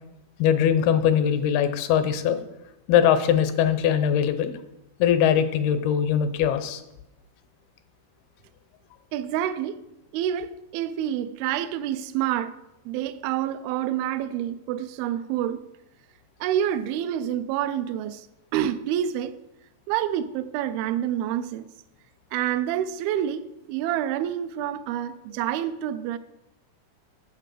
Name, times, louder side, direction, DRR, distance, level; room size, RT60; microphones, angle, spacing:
voice 1, 0.4-2.4 2.9-4.5 5.0-6.8, left 9 dB, 80° left, 2.7 m, -21 dB
voice 2, 9.1-9.8 10.1-12.6 12.9-15.6 16.4-18.3 18.5-19.4 19.9-21.7 22.3-26.2, right 11 dB, 85° right, 2.4 m, -28 dB
9.0 x 7.5 x 6.6 m
omnidirectional pair, 4.4 m